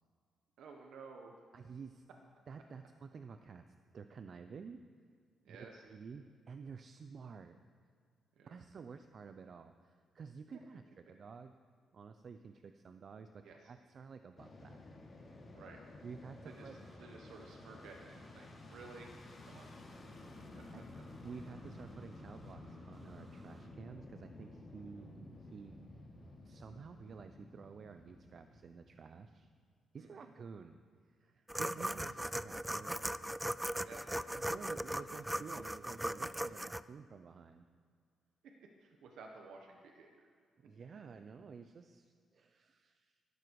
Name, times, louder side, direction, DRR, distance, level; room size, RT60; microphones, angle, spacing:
voice 1, 0.6-1.3 5.4-5.8 8.4-8.6 13.4-13.7 15.5-15.8 16.4-19.1 19.5-19.7 30.0-30.3 33.8-34.0 38.4-38.5 38.8-40.3, right 4 dB, 80° right, 2 dB, 1.3 m, -54 dB
voice 2, 1.5-2.0 2.5-3.7 3.9-4.8 5.5-5.6 5.8-7.6 8.5-11.5 11.9-14.8 15.1-15.4 16.0-16.8 20.7-20.8 21.2-25.8 26.4-29.5 29.9-30.8 31.0-33.2 34.3-37.7 40.6-43.2, right 5 dB, 50° right, 8 dB, 0.6 m, -51 dB
Fixed-wing aircraft airplane, 14.4-29.5, left 2 dB, 40° left, 3.0 m, -53 dB
sound 1, 16.4-23.7, right 1 dB, 30° right, 2.2 m, -66 dB
sound 2, 31.5-36.8, right 1 dB, 5° right, 0.4 m, -38 dB
16.0 x 12.0 x 4.8 m, 2.1 s
cardioid pair, 95°, 0 cm